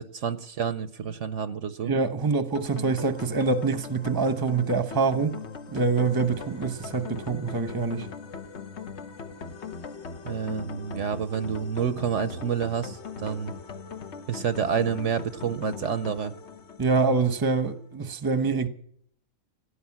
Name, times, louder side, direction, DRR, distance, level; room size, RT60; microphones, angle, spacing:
voice 1, 0.0-1.9 10.2-13.5 14.3-16.3, right 7 dB, 60° right, 1.0 m, -29 dB
voice 2, 1.8-5.4 5.7-8.1 16.8-18.7, right 4 dB, 20° right, 0.9 m, -25 dB
sound 1, 2.5-17.6, left 5 dB, 55° left, 1.2 m, -40 dB
17.5 x 10.5 x 7.3 m
omnidirectional pair, 1.5 m